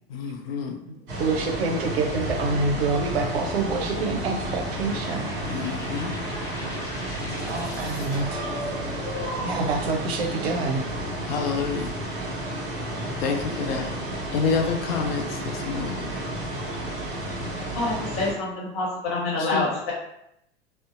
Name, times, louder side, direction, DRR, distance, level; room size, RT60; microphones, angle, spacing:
voice 1, 0.1-0.8 5.5-6.1 11.3-11.9 13.2-14.0 14.3-16.1 19.4-19.7, left 5 dB, 65° left, 2 dB, 0.5 m, -28 dB
sound 1, 1.1-18.3, right 1 dB, 40° right, 1.3 m, -32 dB
voice 2, 1.2-5.3 7.2-8.7 9.4-10.8, right 4 dB, 70° right, 3 dB, 0.6 m, -27 dB
sound 2, 2.1-9.9, left 1 dB, 10° left, 0.4 m, -36 dB
voice 3, 17.7-19.9, left 2 dB, 40° left, -4 dB, 1.1 m, -27 dB
2.6 x 2.1 x 2.5 m, 0.79 s
hypercardioid pair, 90°, 32 cm